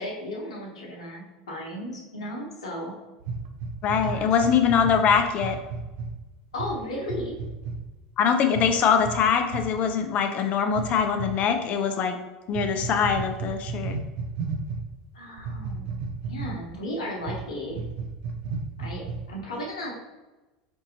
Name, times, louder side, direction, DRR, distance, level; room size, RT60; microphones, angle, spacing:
voice 1, 0.0-2.9 4.0-4.3 6.5-7.3 15.1-16.0 16.2-17.9 18.8-19.9, left 1 dB, 80° left, -2 dB, 0.9 m, -35 dB
sound 1, 3.2-6.1 6.5-6.7 7.0-7.8 8.5-8.7 9.0-9.2 9.5-9.7 10.7-11.3 12.5-14.8 15.4-16.7 17.2-17.4 17.7-19.4, right 4 dB, 60° right, 0.5 m, -33 dB
voice 2, 3.8-5.6 8.2-12.2 12.5-13.9, left 7 dB, 45° left, 6 dB, 0.5 m, -23 dB
4.5 x 2.6 x 2.8 m, 1.1 s
hypercardioid pair, 85°, 3 cm